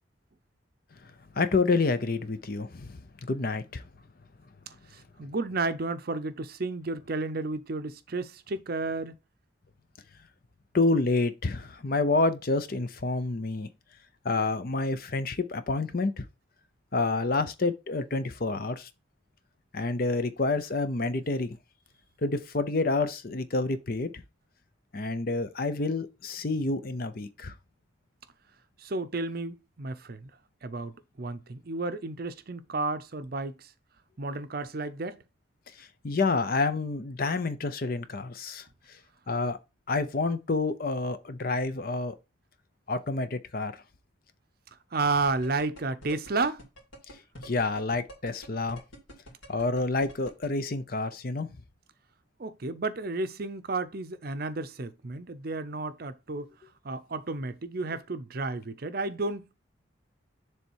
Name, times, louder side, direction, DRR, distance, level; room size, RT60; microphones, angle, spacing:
voice 1, 1.3-3.9 10.7-13.7 14.2-16.2 16.9-18.9 19.7-21.6 22.2-24.2 24.9-27.5 35.8-38.7 39.3-39.6 39.9-42.1 42.9-43.7 47.4-48.8 49.5-51.5, left 3 dB, 45° left, 0.6 m, -28 dB
voice 2, 4.7-9.1 28.8-30.3 30.6-33.7 34.2-35.2 44.9-46.6 52.4-56.5 56.8-59.5, right 3 dB, 50° right, 0.6 m, -32 dB
sound 1, 45.4-50.5, equal, 80° left, 2.7 m, -45 dB
7.0 x 3.4 x 4.6 m
head